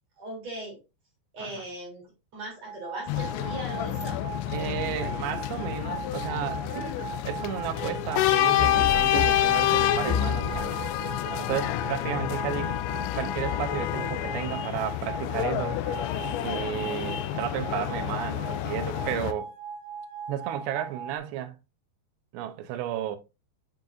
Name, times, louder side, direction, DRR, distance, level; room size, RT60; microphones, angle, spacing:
voice 1, 0.2-0.8 1.3-2.1 2.3-4.2, right 1 dB, 40° right, 4.0 m, -38 dB
sound 1, 2.6-21.2, right 6 dB, 55° right, 3.4 m, -39 dB
sound 2, 3.1-19.3, left 13 dB, 85° left, 2.9 m, -28 dB
voice 2, 4.5-10.8 11.4-12.7 13.1-15.8 16.4-19.5 20.3-21.6 22.3-23.2, right 11 dB, 80° right, 2.8 m, -33 dB
sound 3, 8.6-12.0, left 6 dB, 30° left, 0.6 m, -31 dB
8.9 x 5.8 x 2.6 m
omnidirectional pair, 5.2 m